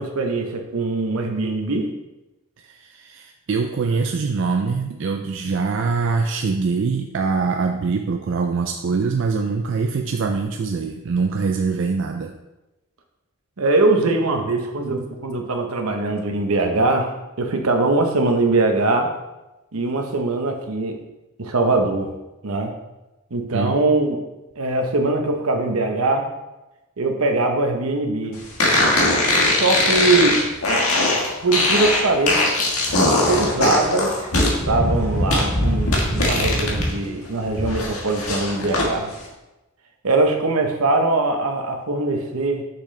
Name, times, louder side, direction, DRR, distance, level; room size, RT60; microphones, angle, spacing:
voice 1, 0.0-1.9 13.6-19.1 19.7-21.0 21.4-22.1 22.4-22.7 23.3-24.2 24.6-26.3 27.0-28.4 29.5-30.4 31.4-39.1 40.0-42.6, right 2 dB, 80° right, 4 dB, 0.9 m, -22 dB
voice 2, 2.6-12.3 23.5-23.8, right 4 dB, 60° right, 4 dB, 0.4 m, -23 dB
sound 1, 28.6-36.9 37.3-38.9, left 1 dB, 85° left, 1.5 m, -20 dB
6.3 x 6.0 x 3.3 m, 1.0 s
head